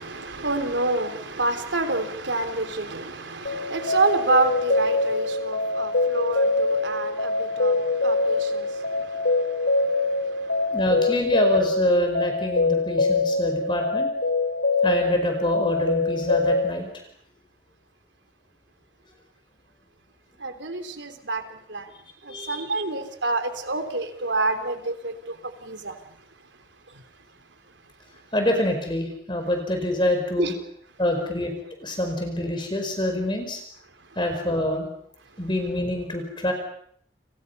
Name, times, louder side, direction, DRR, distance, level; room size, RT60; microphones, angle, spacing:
voice 1, 0.0-10.8 20.4-21.9 22.2-26.2 26.9-27.0 30.4-30.5, right 3 dB, 85° right, 7 dB, 3.5 m, -28 dB
sound 1, 3.5-16.7, left 3 dB, 80° left, 3.0 m, -24 dB
voice 2, 10.7-14.1 14.8-16.9 22.3-22.6 28.3-30.5 31.0-31.5 31.8-33.6 34.2-34.9 35.4-36.5, left 1 dB, 25° left, 4 dB, 4.8 m, -26 dB
29.5 x 28.5 x 5.6 m, 0.64 s
head